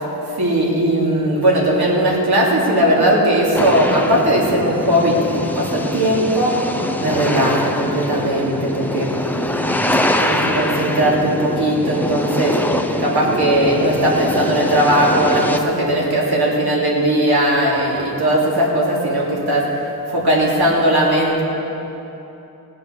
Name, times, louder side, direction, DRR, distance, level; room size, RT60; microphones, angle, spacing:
voice 1, 0.4-6.5 7.0-9.6 10.0-12.6 13.0-19.7 20.1-21.4, right 1 dB, 80° right, -4 dB, 2.9 m, -18 dB
sound 1, 3.5-15.6, left 1 dB, 5° left, 0.7 m, -23 dB
18.5 x 7.6 x 6.5 m, 3.0 s
wide cardioid pair, 110°, 38 cm